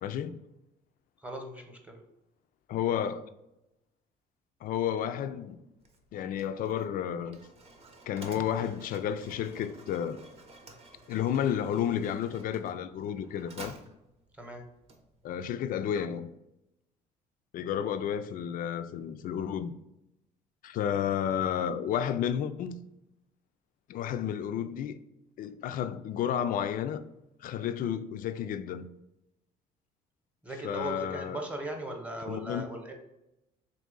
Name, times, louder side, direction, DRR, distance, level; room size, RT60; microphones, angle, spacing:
voice 1, 0.0-0.4 2.7-3.2 4.6-5.6 6.1-7.4 8.0-10.2 11.1-13.7 15.2-16.3 17.5-19.7 20.6-22.8 23.9-24.9 25.4-27.0 27.4-28.9 30.6-31.4 32.3-32.6, left 9 dB, 55° left, 0.4 m, -31 dB
voice 2, 1.2-2.0 14.4-14.6 30.4-32.9, right 1 dB, 10° right, 0.8 m, -38 dB
Mechanisms, 5.8-15.5, right 2 dB, 35° right, 0.7 m, -52 dB
3.6 x 2.9 x 3.8 m
cardioid pair, 110°, 17 cm